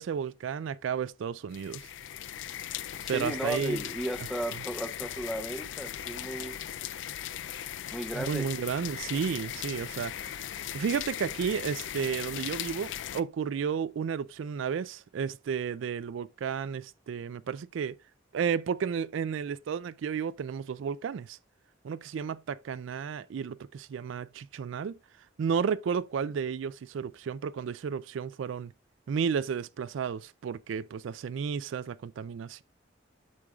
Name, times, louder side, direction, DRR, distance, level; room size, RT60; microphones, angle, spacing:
voice 1, 0.0-1.8 3.1-3.8 8.1-18.0 18.3-21.4 21.8-25.0 25.4-28.7 29.1-32.6, right 7 dB, 75° right, 0.3 m, -32 dB
sound 1, 1.5-13.2, left 11 dB, 70° left, 0.4 m, -38 dB
voice 2, 3.0-6.6 7.9-8.5, right 1 dB, ahead, 0.6 m, -35 dB
8.5 x 6.2 x 2.3 m
head